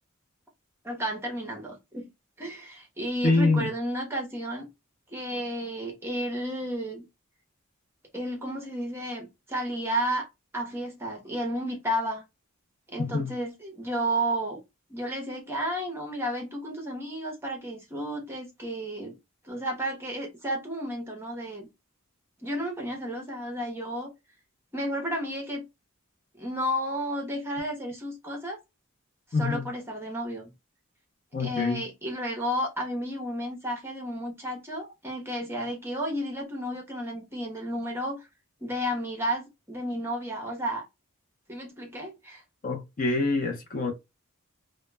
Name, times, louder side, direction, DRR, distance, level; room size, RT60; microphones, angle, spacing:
voice 1, 0.8-2.1 2.4-4.7 5.1-7.0 8.1-10.3 10.5-12.2 12.9-14.6 14.9-19.1 19.4-21.7 22.4-24.1 24.7-25.6 26.4-28.6 29.4-30.5 31.4-38.3 38.6-40.8 41.5-42.4, equal, 10° right, 0.7 m, -32 dB
voice 2, 3.2-3.7 13.0-13.3 29.3-29.6 31.3-31.8 42.6-43.9, left 3 dB, 40° left, 0.5 m, -25 dB
2.1 x 2.0 x 3.1 m
head